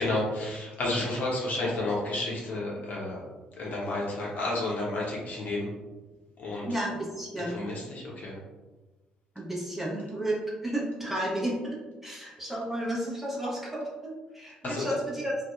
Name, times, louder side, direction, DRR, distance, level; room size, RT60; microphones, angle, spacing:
voice 1, 0.0-3.2 3.5-5.7 6.4-6.7 7.5-8.4 14.6-14.9, left 2 dB, 40° left, -4 dB, 0.7 m, -31 dB
voice 2, 6.6-7.7 9.4-11.8 12.0-15.5, right 1 dB, 5° right, -5 dB, 0.6 m, -32 dB
2.6 x 2.1 x 2.3 m, 1.2 s
figure-of-eight pair, 45°, 4 cm